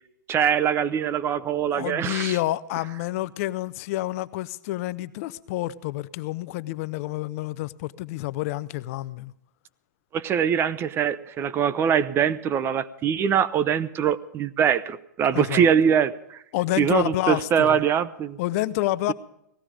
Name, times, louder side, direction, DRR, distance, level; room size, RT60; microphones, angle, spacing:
voice 1, 0.3-2.4 10.1-16.4 16.8-18.4, right 8 dB, 25° right, 16 dB, 0.7 m, -23 dB
voice 2, 1.7-9.3 15.3-15.7 16.5-17.8 18.4-19.1, left 16 dB, 50° left, 16 dB, 0.7 m, -28 dB
18.0 x 15.0 x 5.1 m, 0.80 s
hypercardioid pair, 135°, 10 cm